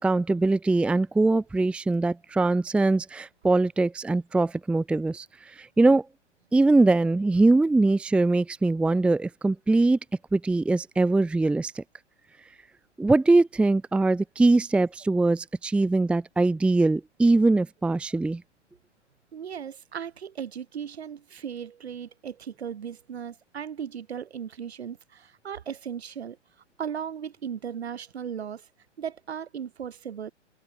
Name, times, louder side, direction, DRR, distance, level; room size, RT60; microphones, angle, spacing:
voice 1, 0.0-6.1 6.5-10.0 10.3-11.8 13.0-18.4, right 2 dB, 5° right, 1.0 m, -22 dB
voice 2, 19.3-26.4 26.8-28.7 29.0-30.3, right 8 dB, 60° right, 5.7 m, -36 dB
figure-of-eight pair, 125°, 36 cm